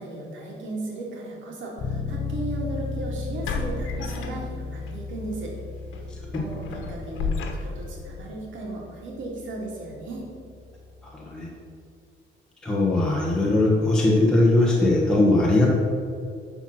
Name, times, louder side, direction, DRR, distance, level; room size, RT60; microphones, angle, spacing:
voice 1, 0.0-5.5 6.4-7.3 7.6-10.2, right 2 dB, 70° right, -2 dB, 2.7 m, -35 dB
Bass guitar, 1.8-11.5, left 4 dB, 55° left, 1.7 m, -36 dB
sound 1, 2.3-2.5 3.4-4.9 5.3-5.5 5.9-8.0, left 4 dB, 70° left, 1.2 m, -32 dB
voice 2, 11.0-11.5 12.6-15.7, left 2 dB, 5° left, -5 dB, 1.3 m, -20 dB
12.5 x 4.5 x 6.1 m, 2.4 s
cardioid pair, 155°, 21 cm